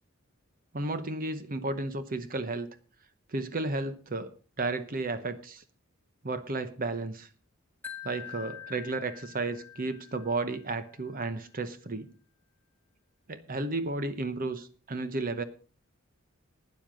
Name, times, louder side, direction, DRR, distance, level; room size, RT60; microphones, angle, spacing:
voice 1, 0.7-2.7 3.3-4.3 4.6-5.6 6.2-7.3 8.0-12.1 13.3-15.4, right 2 dB, 40° right, 11 dB, 0.9 m, -33 dB
Wind chime, 7.8-10.9, left 10 dB, 10° left, 1.4 m, -46 dB
12.5 x 9.5 x 5.1 m, 0.37 s
head